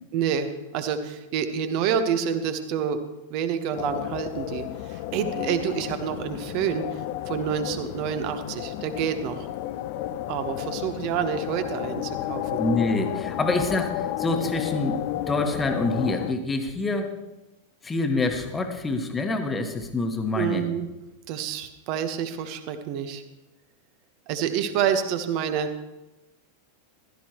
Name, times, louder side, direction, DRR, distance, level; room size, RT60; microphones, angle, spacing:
voice 1, 0.1-3.0 3.3-9.5 10.3-12.6 20.3-20.9 21.3-23.2 24.3-25.7, right 8 dB, 45° right, 9 dB, 1.2 m, -28 dB
sound 1, 3.7-16.3, left 13 dB, 45° left, 0.6 m, -32 dB
voice 2, 12.6-15.0 15.3-17.1 17.8-20.7, left 2 dB, 15° left, 6 dB, 1.5 m, -26 dB
15.5 x 13.0 x 3.1 m, 1.0 s
figure-of-eight pair, 90°, 0 cm